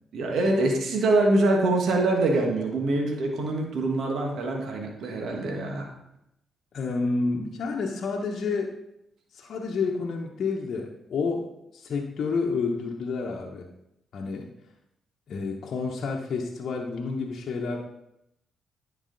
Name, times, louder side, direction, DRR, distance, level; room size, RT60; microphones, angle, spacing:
voice 1, 0.1-5.9, right 2 dB, 70° right, 2 dB, 1.4 m, -24 dB
voice 2, 6.7-8.7 9.3-13.7 14.1-14.5 15.3-17.8, left 4 dB, 65° left, -1 dB, 0.9 m, -29 dB
10.0 x 4.8 x 3.9 m, 0.82 s
hypercardioid pair, 45°, 0 cm